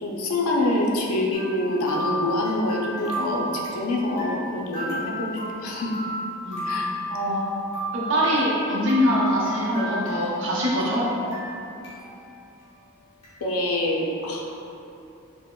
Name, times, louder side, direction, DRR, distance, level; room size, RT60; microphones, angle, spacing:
voice 1, 0.0-5.9 6.6-6.9 9.7-9.9 13.4-14.5, left 1 dB, 80° left, -2 dB, 0.5 m, -26 dB
sound 1, 1.3-10.5 10.8-12.2 12.6-12.7 13.2-13.3, equal, 30° left, 1.0 m, -33 dB
voice 2, 7.1-7.4 7.9-11.1, equal, 60° right, -6 dB, 0.7 m, -23 dB
4.8 x 2.1 x 2.2 m, 2.8 s
head